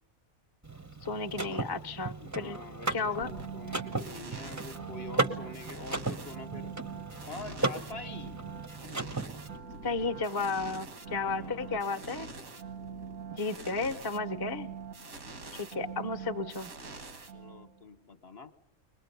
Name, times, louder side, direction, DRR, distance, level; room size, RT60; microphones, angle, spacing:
Car / Mechanisms, 0.6-9.6, right 3 dB, 15° right, 0.8 m, -36 dB
voice 1, 1.0-2.6 2.9-3.3 9.8-12.3 13.3-14.7 15.5-16.7, left 4 dB, 20° left, 5 dB, 0.8 m, -33 dB
voice 2, 2.2-6.7 7.3-8.4 11.0-12.1 17.3-18.5, left 3 dB, 45° left, 12 dB, 1.3 m, -46 dB
sound 1, 3.2-17.8, right 5 dB, 75° right, 2.3 m, -43 dB
22.5 x 20.5 x 8.1 m, 0.66 s
omnidirectional pair, 1.5 m